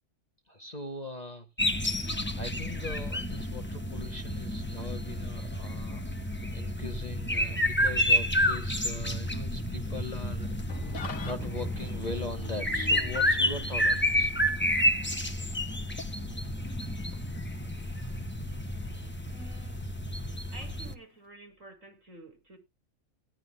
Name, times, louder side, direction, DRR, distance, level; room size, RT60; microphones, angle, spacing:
voice 1, 0.5-1.5 1.8-1.9 2.3-6.1 6.5-10.5 11.2-14.3, left 2 dB, 30° left, 1.6 m, -40 dB
sound 1, 1.6-20.9, left 1 dB, 10° left, 1.3 m, -30 dB
Engine starting / Idling, 10.7-21.3, left 4 dB, 60° left, 2.0 m, -48 dB
voice 2, 19.3-19.8 20.5-22.6, right 1 dB, 55° right, 6.9 m, -49 dB
17.0 x 12.0 x 2.2 m
omnidirectional pair, 1.6 m